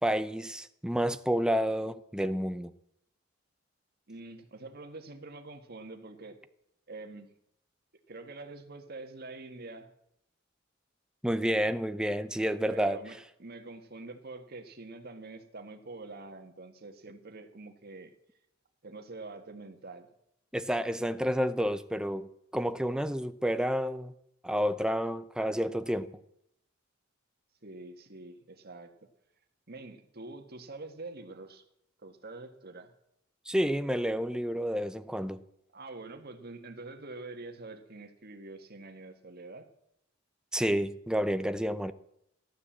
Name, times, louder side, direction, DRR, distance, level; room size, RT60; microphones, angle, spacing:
voice 1, 0.0-2.7 11.2-13.0 20.5-24.1 24.4-26.1 33.5-35.4 40.5-41.9, equal, 5° right, 0.6 m, -30 dB
voice 2, 4.1-6.4 6.9-7.3 8.1-9.9 12.7-18.1 18.8-20.1 27.6-28.9 29.7-31.6 32.0-32.9 35.7-39.7, right 3 dB, 50° right, 1.7 m, -45 dB
14.0 x 12.0 x 7.4 m
head